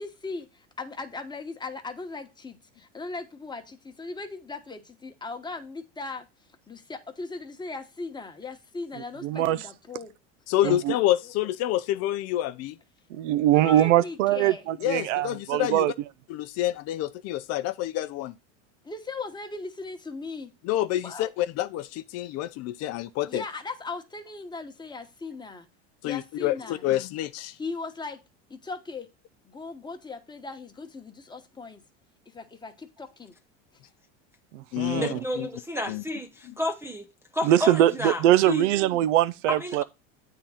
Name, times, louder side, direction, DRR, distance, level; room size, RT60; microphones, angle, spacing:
voice 1, 0.0-6.3 6.7-10.1 13.5-14.7 18.8-20.5 21.0-21.3 23.3-25.7 26.0-26.8 27.6-28.2 28.5-29.1 29.4-31.8 32.3-33.3, left 3 dB, 10° left, 1.1 m, -38 dB
voice 2, 9.2-9.6 10.6-10.9 13.1-15.9 34.5-35.2 37.4-39.8, right 13 dB, 80° right, 0.5 m, -22 dB
voice 3, 10.5-12.8 14.8-15.9 16.3-18.3 20.6-23.4 26.0-27.6 34.7-35.5 35.9-36.0 36.4-36.5, left 14 dB, 45° left, 0.5 m, -28 dB
voice 4, 35.0-37.1 37.3-38.7 39.5-39.8, left 1 dB, 5° right, 0.5 m, -31 dB
8.5 x 3.7 x 5.6 m
supercardioid pair, 115°, 36 cm